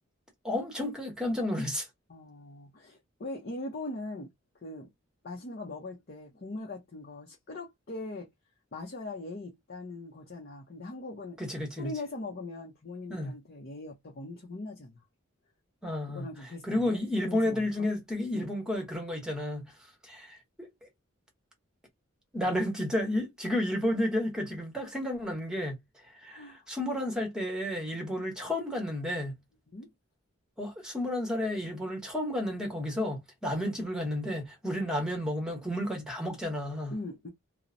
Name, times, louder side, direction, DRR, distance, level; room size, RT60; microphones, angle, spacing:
voice 1, 0.4-1.9 11.4-11.9 13.1-13.3 15.8-16.3 16.6-19.7 20.0-20.7 22.3-25.8 26.2-29.4 30.6-36.9, left 1 dB, 5° right, 1.0 m, -31 dB
voice 2, 2.1-4.3 4.6-4.9 5.2-8.3 8.7-11.4 11.8-15.0 16.0-17.9 18.3-18.5 22.5-22.7 26.3-26.7 29.7-29.9 36.9-37.3, left 2 dB, 50° left, 0.6 m, -41 dB
2.9 x 2.0 x 2.5 m
head